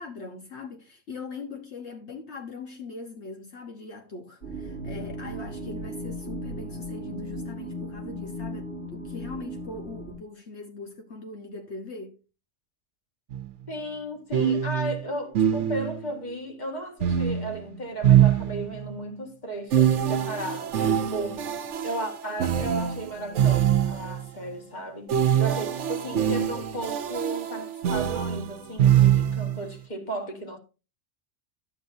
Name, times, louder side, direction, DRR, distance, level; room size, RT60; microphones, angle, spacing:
voice 1, 0.0-12.2, left 3 dB, 70° left, 1.5 m, -41 dB
sound 1, 4.4-10.1, equal, 85° left, 7.4 m, -36 dB
sound 2, 13.3-13.5 14.3-16.1 17.0-18.9 19.7-24.2 25.1-29.6, right 10 dB, 80° right, 1.1 m, -24 dB
voice 2, 13.7-21.4 21.8-25.1 25.4-30.6, right 1 dB, 40° left, 2.0 m, -35 dB
12.0 x 8.9 x 2.7 m
omnidirectional pair, 1.2 m